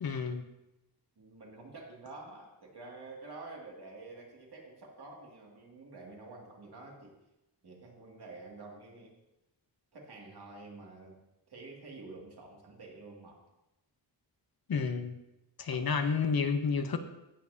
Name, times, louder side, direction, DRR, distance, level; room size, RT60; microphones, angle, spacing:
voice 1, 0.0-0.4 14.7-15.1 15.6-17.0, left 5 dB, 55° left, 8 dB, 0.8 m, -30 dB
voice 2, 1.2-7.2 7.6-9.2 9.9-11.2 11.5-13.4 15.6-15.9, right 3 dB, 65° right, -2 dB, 2.3 m, -49 dB
16.5 x 7.1 x 2.8 m, 0.94 s
wide cardioid pair, 155°, 43 cm